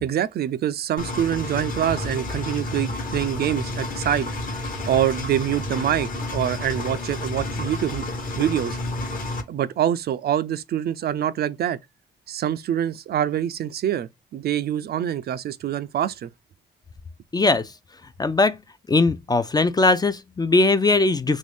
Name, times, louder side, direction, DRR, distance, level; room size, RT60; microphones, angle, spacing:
voice 1, 0.0-4.3 4.9-8.0 8.4-8.8 9.5-11.8 12.3-16.3, right 10 dB, 55° right, 0.4 m, -25 dB
Engine, 1.0-9.4, left 2 dB, 45° left, 1.0 m, -30 dB
voice 2, 17.3-17.7 18.2-18.6 18.9-21.4, left 3 dB, 20° left, 0.3 m, -20 dB
3.0 x 2.6 x 3.2 m
cardioid pair, 90°, 20 cm